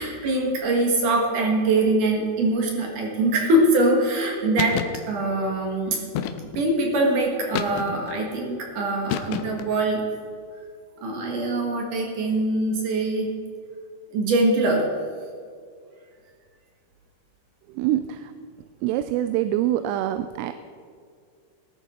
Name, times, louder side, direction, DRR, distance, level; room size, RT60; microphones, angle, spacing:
voice 1, 0.0-4.8 5.1-6.0 6.5-10.0 11.0-13.3 14.1-14.9, right 2 dB, 55° right, 0 dB, 2.4 m, -23 dB
sound 1, 4.6-5.0 6.2-6.7 7.5-8.2 9.1-9.7, left 9 dB, 80° left, 2.8 m, -29 dB
voice 2, 17.7-18.3 18.8-20.5, right 12 dB, 90° right, 10 dB, 3.2 m, -25 dB
19.0 x 11.0 x 4.3 m, 2.2 s
omnidirectional pair, 5.7 m